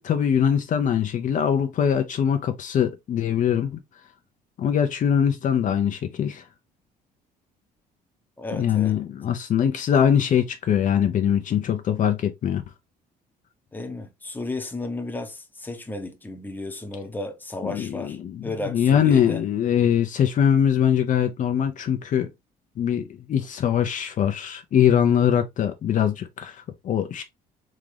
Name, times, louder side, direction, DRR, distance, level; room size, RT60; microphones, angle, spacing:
voice 1, 0.0-3.8 4.6-6.4 8.5-12.6 17.7-22.3 22.8-27.2, left 8 dB, 50° left, 0.7 m, -22 dB
voice 2, 8.4-9.0 13.7-19.4, left 2 dB, 10° left, 1.0 m, -33 dB
3.7 x 3.6 x 3.3 m
cardioid pair, 110°, 17 cm